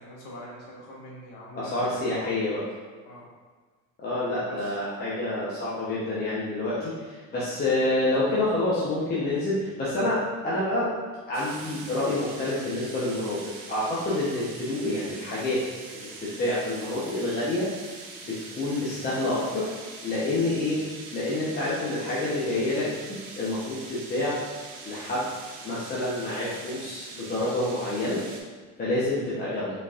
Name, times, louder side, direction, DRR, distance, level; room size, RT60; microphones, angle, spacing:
voice 1, 0.0-2.1 3.0-3.3 4.5-4.8, equal, 80° left, -4 dB, 1.3 m, -43 dB
voice 2, 1.6-2.7 4.0-10.9 11.3-15.6 15.9-17.7 18.2-19.7 20.0-20.8 21.1-24.4 24.8-25.3 25.6-28.2 28.8-29.7, left 2 dB, 30° left, -9 dB, 0.8 m, -28 dB
sound 1, 11.3-28.4, right 3 dB, 60° right, 0.8 m, -43 dB
4.1 x 4.0 x 2.4 m, 1.4 s
cardioid pair, 150°, 32 cm